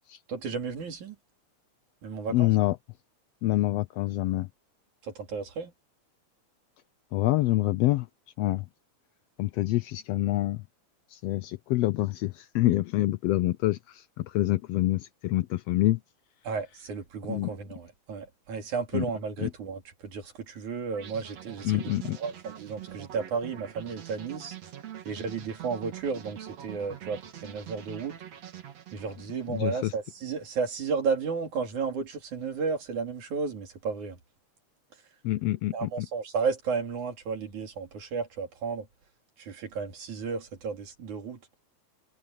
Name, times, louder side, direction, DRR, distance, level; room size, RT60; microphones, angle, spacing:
voice 1, 0.3-1.2 2.0-2.5 5.0-5.7 16.4-24.6 25.0-28.2 28.9-34.2 35.7-38.9 39.4-41.4, right 5 dB, 90° right, 4.6 m, -33 dB
voice 2, 2.3-2.8 3.4-4.5 7.1-8.1 8.4-8.6 9.4-10.6 11.1-16.0 17.3-17.5 18.9-19.0 19.4-19.5 21.6-22.2 29.5-29.9 35.2-36.1, left 17 dB, 80° left, 1.5 m, -26 dB
sound 1, 20.9-30.0, right 11 dB, 65° right, 3.3 m, -44 dB
omnidirectional pair, 3.3 m